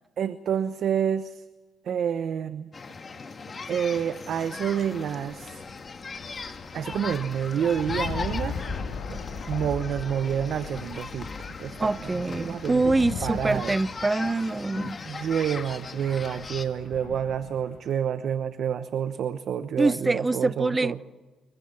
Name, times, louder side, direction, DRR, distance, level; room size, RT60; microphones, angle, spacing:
voice 1, 0.2-1.4 1.8-2.7 3.7-5.6 6.7-8.5 9.1-9.2 9.5-11.3 11.6-12.8 13.2-13.7 15.0-21.0, right 8 dB, 65° right, 1.0 m, -28 dB
sound 1, 2.7-16.7, left 4 dB, 35° left, 2.3 m, -39 dB
sound 2, 4.4-17.9, left 5 dB, 75° left, 5.7 m, -39 dB
voice 2, 11.8-15.0 19.8-21.0, right 2 dB, 20° right, 0.6 m, -25 dB
28.0 x 23.5 x 6.1 m
cardioid pair, 90°, 0 cm